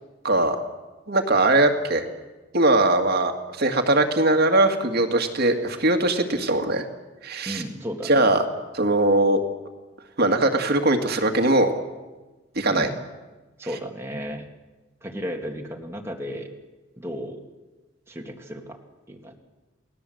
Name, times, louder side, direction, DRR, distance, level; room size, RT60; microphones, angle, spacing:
voice 1, 0.2-0.6 1.1-2.1 2.5-6.9 7.2-7.6 8.1-8.4 8.7-9.4 10.2-11.7 12.6-12.9, right 2 dB, 60° right, 4 dB, 2.1 m, -20 dB
voice 2, 7.5-8.4 12.7-13.0 13.6-14.5 15.0-16.5 17.0-17.4 18.1-18.8 19.1-19.4, equal, 15° right, 1 dB, 2.3 m, -34 dB
29.5 x 19.0 x 7.9 m, 1.2 s
head